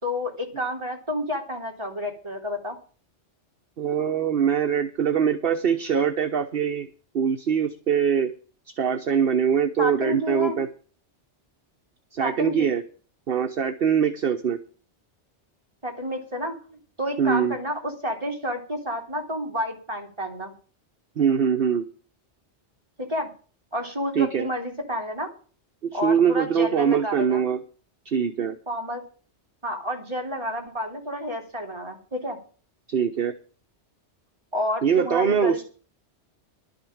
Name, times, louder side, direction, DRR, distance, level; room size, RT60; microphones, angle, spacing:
voice 1, 0.0-2.8 9.8-10.6 12.2-12.7 15.8-20.5 23.0-23.3 23.7-25.3 25.9-27.4 28.7-29.0 29.6-32.4 34.5-35.6, equal, 25° right, 1 dB, 2.8 m, -30 dB
voice 2, 3.8-6.9 7.1-8.3 8.8-10.7 12.1-12.8 13.3-14.6 17.2-17.6 21.2-21.9 24.1-24.5 25.9-27.6 28.0-28.6 32.9-33.3 34.8-35.6, right 7 dB, 55° right, 7 dB, 1.1 m, -23 dB
12.0 x 6.6 x 8.6 m, 0.40 s
omnidirectional pair, 1.2 m